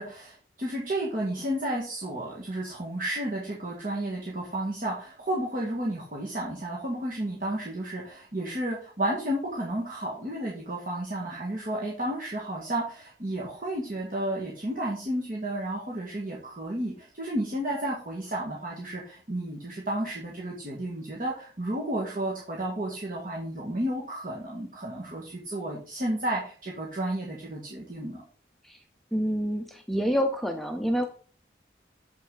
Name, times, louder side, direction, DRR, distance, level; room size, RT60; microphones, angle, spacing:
voice 1, 0.0-28.2, right 1 dB, 50° right, -3 dB, 1.9 m, -32 dB
voice 2, 29.1-31.1, equal, ahead, 4 dB, 0.6 m, -27 dB
8.0 x 5.8 x 3.9 m, 0.42 s
head